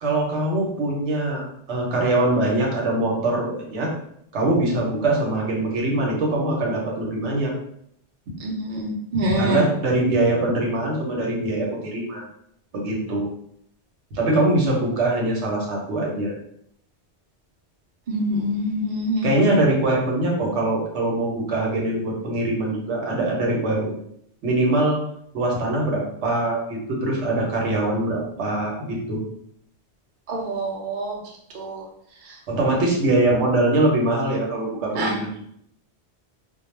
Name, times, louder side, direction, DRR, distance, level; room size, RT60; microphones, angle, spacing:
voice 1, 0.0-3.9 4.3-7.5 9.3-12.2 12.7-13.3 14.1-16.3 19.2-23.9 24.4-25.0 25.3-29.2 32.5-35.4, right 2 dB, 80° right, -2 dB, 1.0 m, -23 dB
voice 2, 8.4-9.6 18.1-19.3 30.3-31.1 31.5-31.8 35.0-35.1, right 1 dB, 55° right, -2 dB, 0.6 m, -25 dB
2.3 x 2.1 x 3.0 m, 0.72 s
omnidirectional pair, 1.1 m